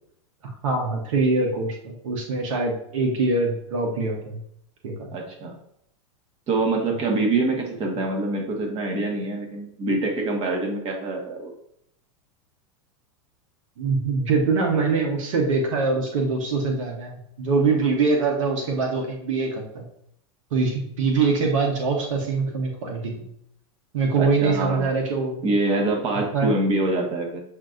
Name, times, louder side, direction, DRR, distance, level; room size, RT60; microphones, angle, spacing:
voice 1, 0.4-4.4 4.8-5.1 13.8-19.9 20.5-23.3 23.9-25.4 26.3-26.5, right 4 dB, 80° right, 2 dB, 1.0 m, -23 dB
voice 2, 5.1-5.5 6.5-11.5 24.2-24.8 25.4-27.4, right 2 dB, 35° right, 1 dB, 1.3 m, -25 dB
7.2 x 2.6 x 2.5 m, 0.73 s
supercardioid pair, 125°, 16 cm